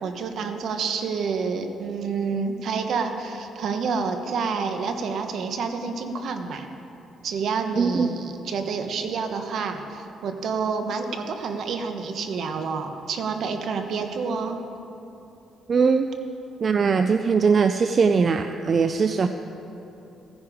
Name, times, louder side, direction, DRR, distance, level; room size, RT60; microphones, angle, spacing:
voice 1, 0.0-6.7 7.2-14.6, right 5 dB, 65° right, 6 dB, 1.1 m, -28 dB
voice 2, 7.8-8.1 15.7-16.1 16.6-19.3, right 5 dB, 45° right, 8 dB, 0.4 m, -20 dB
16.0 x 10.5 x 5.0 m, 2.9 s
cardioid pair, 90°, 0 cm